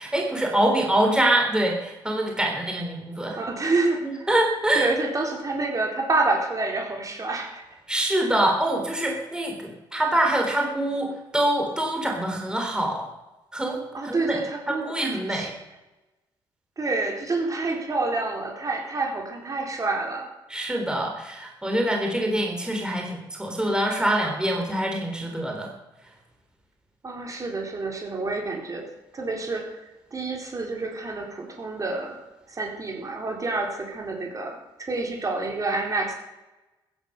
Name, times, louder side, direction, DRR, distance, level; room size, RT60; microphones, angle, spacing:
voice 1, 0.0-3.4 4.0-4.9 7.9-13.1 13.5-14.4 14.7-15.6 20.5-25.7, right 1 dB, 10° right, 1 dB, 3.7 m, -25 dB
voice 2, 3.4-4.3 4.7-7.8 13.9-15.5 16.8-20.3 27.0-28.9 29.1-29.8 30.1-32.2 32.5-36.1, right 3 dB, 35° right, 2 dB, 4.1 m, -28 dB
15.0 x 10.5 x 6.7 m, 1.0 s
supercardioid pair, 70°, 10 cm